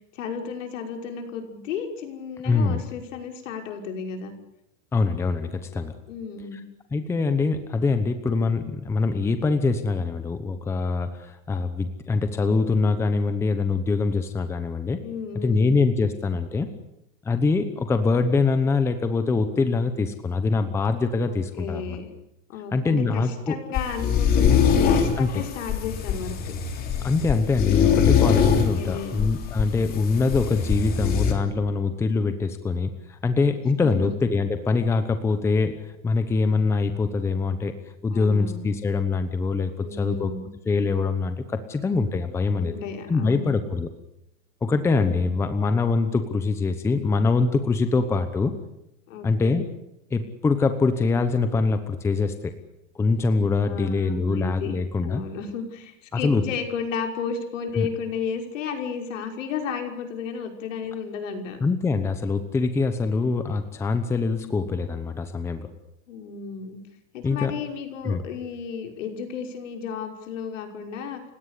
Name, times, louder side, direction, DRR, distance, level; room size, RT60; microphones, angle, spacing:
voice 1, 0.1-4.3 6.1-6.6 15.0-15.7 21.3-22.1 22.5-26.5 28.7-29.2 33.9-34.2 38.1-38.7 39.8-40.5 42.6-43.5 45.0-45.7 49.1-49.6 53.5-54.7 55.0-61.6 66.1-66.8 67.1-71.2, left 6 dB, 65° left, 4 dB, 5.8 m, -33 dB
voice 2, 2.4-2.8 4.9-5.9 6.9-15.0 15.3-16.7 17.2-22.0 22.7-23.5 25.2-25.4 27.0-37.7 38.0-40.3 40.6-42.7 43.1-43.9 44.6-48.5 49.2-49.6 50.1-52.5 52.9-55.2 56.2-56.4 57.7-57.9 61.6-65.7 67.2-67.5 68.0-68.2, left 4 dB, 5° left, 9 dB, 1.0 m, -24 dB
sound 1, 23.7-31.3, left 7 dB, 20° left, 3.2 m, -22 dB
30.0 x 17.5 x 8.5 m, 0.83 s
supercardioid pair, 165°, 40 cm